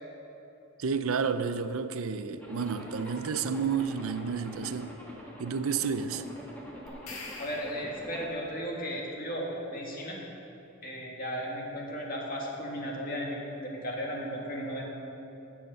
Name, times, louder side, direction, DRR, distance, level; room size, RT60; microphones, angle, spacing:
voice 1, 0.8-4.9 5.4-6.3, right 6 dB, 85° right, 11 dB, 0.5 m, -31 dB
Zipper (clothing), 2.4-8.3, equal, 10° left, 1.6 m, -46 dB
sound 1, 6.9-8.4, left 3 dB, 90° left, 2.0 m, -45 dB
voice 2, 7.4-10.2 10.8-14.8, equal, 40° left, -2 dB, 1.9 m, -35 dB
16.0 x 7.2 x 5.4 m, 3.0 s
head